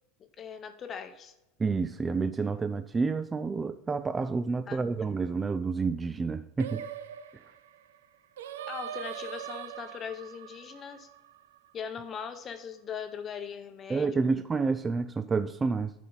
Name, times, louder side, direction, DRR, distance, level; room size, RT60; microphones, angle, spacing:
voice 1, 0.4-1.3 4.7-4.9 8.7-11.1 11.7-14.3, left 7 dB, 30° left, 0.8 m, -40 dB
voice 2, 1.6-6.8 13.9-15.9, right 4 dB, 20° right, 0.3 m, -29 dB
Singing, 6.6-11.9, right 10 dB, 90° right, 0.5 m, -42 dB
10.0 x 5.4 x 4.0 m
supercardioid pair, 120°, 0 cm